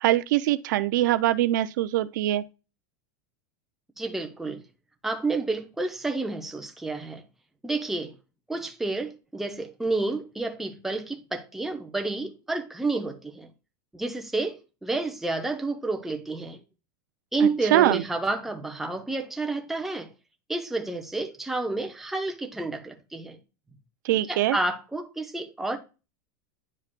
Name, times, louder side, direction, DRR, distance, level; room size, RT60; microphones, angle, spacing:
voice 1, 0.0-2.4 17.7-18.0 24.1-24.6, right 14 dB, 70° right, 0.4 m, -22 dB
voice 2, 4.0-4.6 5.0-7.2 7.6-8.1 8.5-13.5 13.9-16.6 17.3-20.1 20.5-23.4 24.3-25.8, right 3 dB, 5° right, 0.6 m, -30 dB
9.7 x 4.8 x 2.2 m
supercardioid pair, 160°, 10 cm